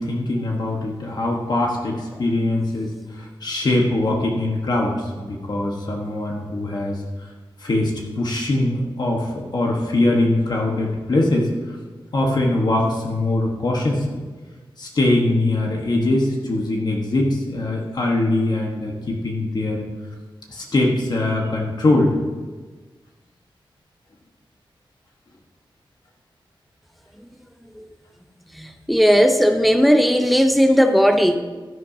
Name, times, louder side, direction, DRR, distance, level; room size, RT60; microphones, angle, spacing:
voice 1, 0.0-7.3 7.6-11.8 12.1-14.2 14.8-19.8 20.5-22.1, left 2 dB, 50° left, -1 dB, 1.3 m, -22 dB
voice 2, 28.6-31.4, equal, ahead, 6 dB, 0.7 m, -16 dB
13.0 x 11.0 x 2.8 m, 1.3 s
wide cardioid pair, 170°, 9 cm